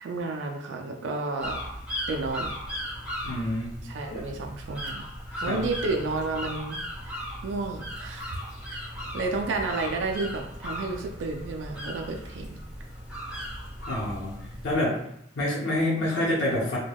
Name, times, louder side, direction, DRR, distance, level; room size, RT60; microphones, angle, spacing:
voice 1, 0.0-1.6 2.1-2.5 3.8-5.0 5.4-6.8 7.0-8.4 8.7-8.8 9.1-12.6, right 3 dB, 90° right, 2 dB, 0.4 m, -31 dB
sound 1, 1.4-14.8, equal, 5° right, 1.0 m, -37 dB
voice 2, 3.2-3.8 4.1-4.2 5.3-5.6 13.9-14.3 14.6-15.0 15.3-16.8, left 1 dB, 90° left, -5 dB, 0.8 m, -27 dB
3.3 x 2.2 x 2.2 m, 0.73 s
head